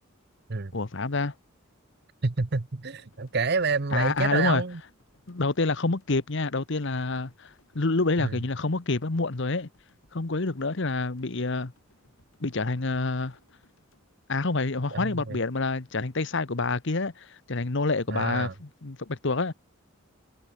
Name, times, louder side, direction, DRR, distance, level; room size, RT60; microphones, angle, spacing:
voice 1, 0.7-1.3 3.9-4.6 5.3-9.7 10.1-11.7 12.4-13.4 14.3-19.5, left 3 dB, 60° left, 1.1 m, -27 dB
voice 2, 2.2-4.8 8.2-8.4 14.9-15.4 18.1-18.5, right 4 dB, 50° right, 0.9 m, -28 dB
sound 1, 3.0-15.2, left 1 dB, 90° left, 6.4 m, -66 dB
head